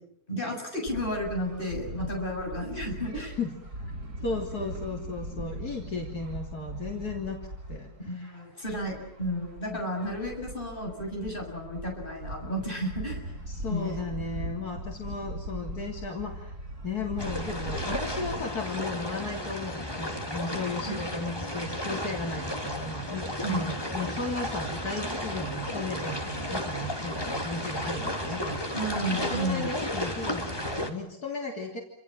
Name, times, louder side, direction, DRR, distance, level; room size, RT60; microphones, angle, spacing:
voice 1, 0.3-3.4 8.1-13.2 13.7-14.0 20.9-21.0 23.4-23.6 28.7-29.7, equal, 35° left, 1 dB, 7.4 m, -32 dB
sound 1, 0.8-18.4, right 1 dB, 85° right, 7.6 m, -40 dB
voice 2, 3.1-3.5 4.2-7.4 7.7-8.4 9.7-9.8 13.5-16.5 16.8-28.8 29.3-31.8, left 3 dB, 80° left, 1 dB, 3.7 m, -35 dB
sound 2, 17.2-30.9, left 1 dB, 15° left, 3.2 m, -33 dB
29.0 x 27.0 x 7.6 m, 0.70 s
omnidirectional pair, 1.6 m